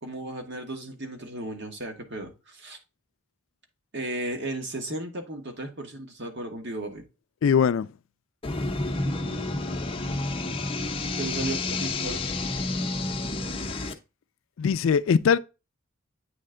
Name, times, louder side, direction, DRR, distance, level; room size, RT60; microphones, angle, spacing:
voice 1, 0.0-2.8 3.9-7.0 9.0-9.6 11.2-12.3, right 1 dB, 55° right, 1.3 m, -35 dB
voice 2, 7.4-7.9 14.6-15.4, left 6 dB, 75° left, 0.3 m, -21 dB
sound 1, 8.4-13.9, left 2 dB, 25° left, 0.6 m, -30 dB
8.4 x 3.3 x 3.7 m
head